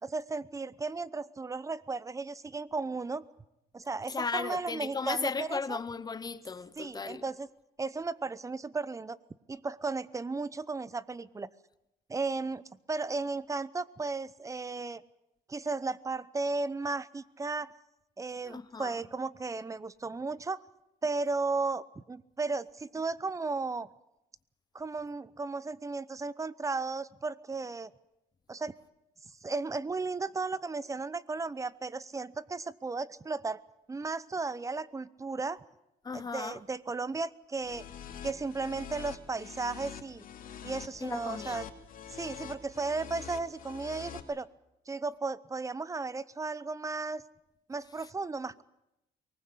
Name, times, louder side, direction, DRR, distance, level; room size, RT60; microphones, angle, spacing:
voice 1, 0.0-3.2 3.7-5.8 6.8-7.5 7.8-9.2 9.5-11.5 12.1-15.0 15.5-17.7 18.2-20.6 21.0-23.9 24.7-27.9 28.5-28.8 29.4-33.6 33.9-35.6 36.1-37.9 38.2-40.2 40.6-41.7 42.1-44.5 44.9-47.2 47.7-48.6, right 3 dB, 20° right, 0.8 m, -35 dB
voice 2, 4.1-7.2 18.5-18.9 36.0-36.6 41.0-41.6, left 5 dB, 25° left, 1.0 m, -36 dB
sound 1, 37.6-44.2, left 9 dB, 55° left, 2.6 m, -45 dB
23.5 x 19.5 x 8.4 m
cardioid pair, 110°, 17 cm